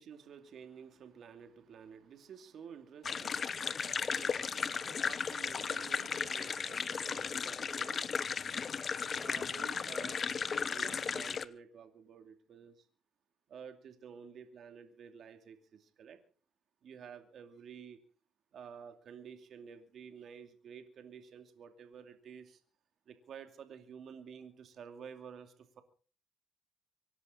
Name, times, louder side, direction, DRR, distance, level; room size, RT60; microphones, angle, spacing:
voice 1, 0.0-8.1 9.2-12.9 13.5-16.2 16.8-18.0 18.5-22.6 23.1-25.8, right 7 dB, 65° right, 6 dB, 2.6 m, -52 dB
sound 1, 3.0-11.5, left 6 dB, 45° left, 1.0 m, -35 dB
25.5 x 11.0 x 4.0 m, 0.41 s
cardioid pair, 90°, 0 cm